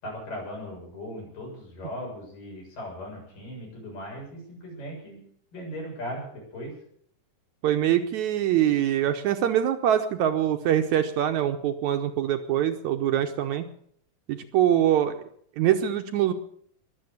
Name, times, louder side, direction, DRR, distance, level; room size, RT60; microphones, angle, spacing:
voice 1, 0.0-5.2 5.5-6.7, equal, 75° left, -2 dB, 8.8 m, -38 dB
voice 2, 7.6-13.6 14.3-15.2 15.6-16.3, right 11 dB, 70° right, 7 dB, 1.9 m, -24 dB
21.0 x 7.6 x 8.2 m, 0.64 s
omnidirectional pair, 3.9 m